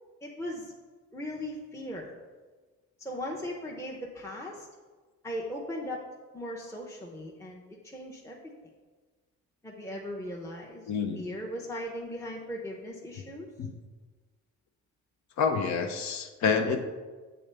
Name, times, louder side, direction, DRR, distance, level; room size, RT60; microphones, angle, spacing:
voice 1, 0.2-0.7 1.1-2.2 3.0-4.7 5.2-6.0 6.3-8.4 9.6-10.8 11.1-13.5, left 1 dB, 10° left, -2 dB, 0.7 m, -38 dB
voice 2, 10.9-11.2 13.6-13.7 15.4-16.8, left 5 dB, 65° left, 4 dB, 0.6 m, -28 dB
7.7 x 3.7 x 3.3 m, 1.4 s
cardioid pair, 90°, 30 cm